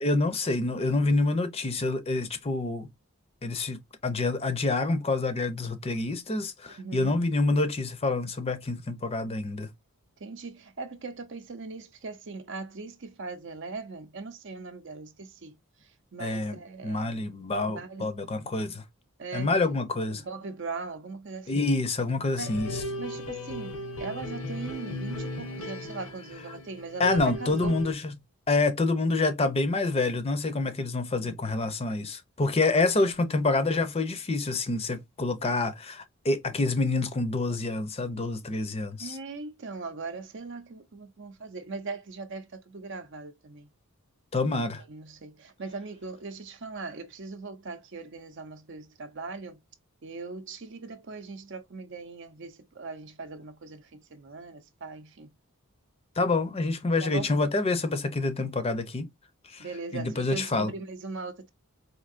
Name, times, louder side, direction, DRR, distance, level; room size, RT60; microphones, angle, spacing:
voice 1, 0.0-2.9 3.4-9.7 16.2-16.6 16.8-18.8 19.3-20.2 21.5-22.8 27.0-28.1 28.5-39.2 44.3-44.8 56.2-59.1 59.5-59.7 59.9-60.7, left 3 dB, 25° left, 0.5 m, -27 dB
voice 2, 6.7-7.2 10.2-15.5 16.1-17.2 17.7-18.2 19.2-19.5 20.1-21.7 22.4-22.5 23.0-27.8 32.9-33.1 39.0-43.7 44.5-44.6 44.9-49.6 50.0-55.3 57.0-57.3 59.6-61.5, right 3 dB, 55° right, 0.6 m, -40 dB
sound 1, 22.4-27.9, left 1 dB, 85° left, 1.1 m, -36 dB
4.4 x 2.7 x 2.5 m
head